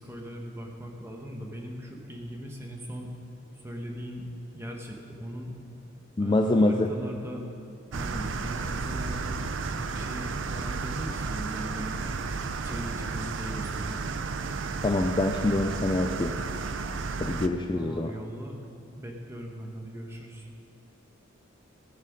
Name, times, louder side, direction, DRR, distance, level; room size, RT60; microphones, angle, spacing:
voice 1, 0.0-3.1 3.6-4.3 4.5-5.5 6.2-7.4 7.9-9.4 9.7-12.1 12.6-14.0 17.7-18.6 19.0-20.5, equal, 10° right, 1 dB, 1.1 m, -39 dB
voice 2, 6.2-6.9 14.8-16.3 17.2-18.1, left 2 dB, 20° left, 4 dB, 0.4 m, -25 dB
sound 1, 7.9-17.5, right 4 dB, 65° right, 0.5 m, -33 dB
17.0 x 6.6 x 5.2 m, 2.6 s
head